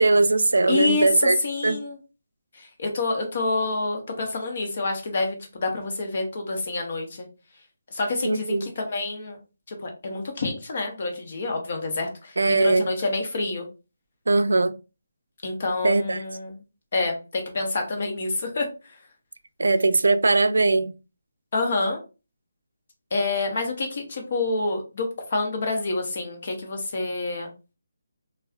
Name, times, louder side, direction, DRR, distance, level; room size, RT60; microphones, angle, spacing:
voice 1, 0.0-1.4 1.6-1.8 8.2-8.7 12.4-12.9 14.3-14.7 15.8-16.2 19.6-20.9, right 3 dB, 85° right, 0.4 m, -20 dB
voice 2, 0.7-1.1 1.4-2.0 2.6-7.3 7.9-9.4 9.7-13.7 15.4-16.5 16.9-18.7 21.5-22.0 23.1-27.5, left 3 dB, 40° left, 1.0 m, -28 dB
4.1 x 2.3 x 2.3 m
hypercardioid pair, 175°, 0 cm